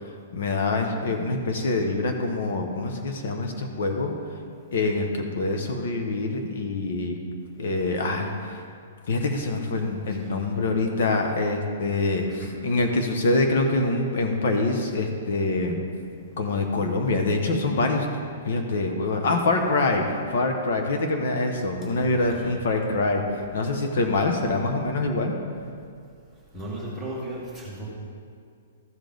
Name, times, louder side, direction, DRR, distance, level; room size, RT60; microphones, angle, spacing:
voice 1, 0.3-4.1 4.7-7.2 7.6-8.6 9.1-15.8 16.4-18.1 18.4-25.3, left 2 dB, 50° left, 3 dB, 0.9 m, -25 dB
voice 2, 9.8-10.5 12.3-12.5 22.0-22.6 26.5-27.9, right 1 dB, ahead, -8 dB, 1.3 m, -37 dB
14.0 x 5.2 x 3.9 m, 2.3 s
hypercardioid pair, 180°, 0 cm